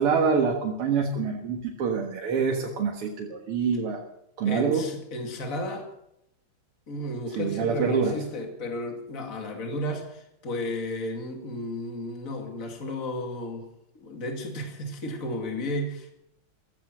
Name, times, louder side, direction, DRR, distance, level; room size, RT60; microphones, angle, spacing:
voice 1, 0.0-4.0 4.4-4.9 7.4-8.2, right 5 dB, 85° right, 0 dB, 2.6 m, -26 dB
voice 2, 4.4-5.9 6.9-13.7 13.9-16.1, left 1 dB, 40° left, 3 dB, 2.7 m, -33 dB
15.5 x 14.5 x 6.3 m, 0.78 s
omnidirectional pair, 2.4 m